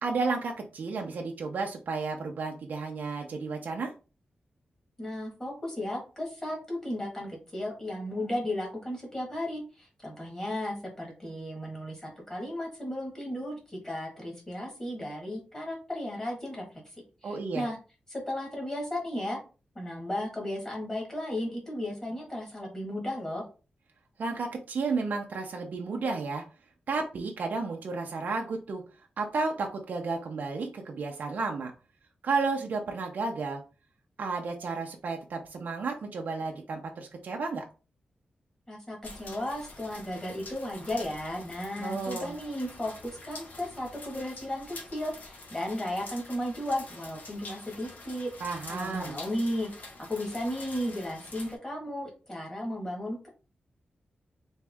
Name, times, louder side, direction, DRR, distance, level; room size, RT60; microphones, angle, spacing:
voice 1, 0.0-3.9 17.2-17.7 24.2-26.4 26.9-28.8 29.2-31.7 32.2-33.6 34.2-37.6 41.8-42.3 48.4-49.2, right 4 dB, 65° right, 2 dB, 0.6 m, -32 dB
voice 2, 5.0-16.6 17.2-17.8 18.1-19.4 19.7-23.4 38.7-48.3 48.7-49.7 50.1-53.3, left 1 dB, 20° left, -1 dB, 1.6 m, -35 dB
sound 1, 39.0-51.5, left 2 dB, 65° left, 1.1 m, -46 dB
3.5 x 3.2 x 3.4 m, 0.33 s
wide cardioid pair, 165°, 3 cm